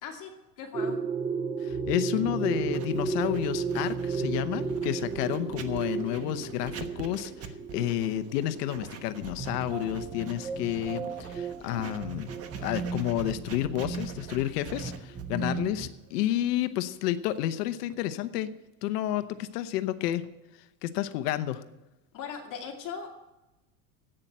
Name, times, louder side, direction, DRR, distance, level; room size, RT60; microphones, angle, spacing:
voice 1, 0.0-1.0 15.4-15.6 22.1-23.2, left 6 dB, 40° left, 2 dB, 2.5 m, -39 dB
sound 1, 0.7-15.9, right 5 dB, 10° right, 0.3 m, -34 dB
voice 2, 1.6-12.3 12.6-18.5 18.8-20.3 20.8-21.6, left 13 dB, 75° left, 12 dB, 1.0 m, -30 dB
Writing, 2.7-17.5, right 6 dB, 30° right, 1.2 m, -45 dB
11.5 x 9.0 x 8.0 m, 0.99 s
supercardioid pair, 120°, 48 cm